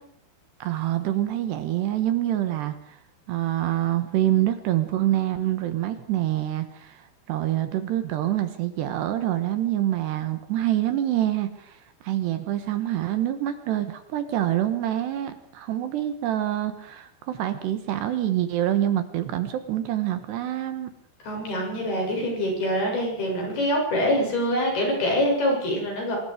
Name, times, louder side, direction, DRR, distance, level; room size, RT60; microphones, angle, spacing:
voice 1, 0.6-3.0 3.3-20.9, right 13 dB, 70° right, 9 dB, 3.2 m, -26 dB
voice 2, 21.2-26.2, equal, 55° left, 0 dB, 9.5 m, -25 dB
25.0 x 21.0 x 5.0 m, 0.66 s
omnidirectional pair, 5.4 m